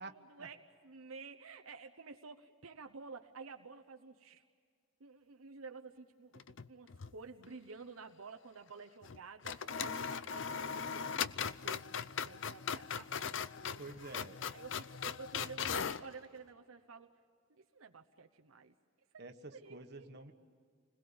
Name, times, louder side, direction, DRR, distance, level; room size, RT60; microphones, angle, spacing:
voice 1, 0.0-4.4 5.0-13.8 14.5-17.1 17.5-18.7 19.1-19.2 19.5-20.1, right 4 dB, 80° right, 5 dB, 1.0 m, -52 dB
sound 1, 6.3-7.2 7.4-7.5 9.0-9.2 9.4-16.1, left 7 dB, 60° left, 0.6 m, -39 dB
voice 2, 13.8-14.4 19.2-20.3, right 3 dB, 50° right, 5 dB, 1.5 m, -48 dB
29.0 x 21.0 x 7.1 m, 2.1 s
head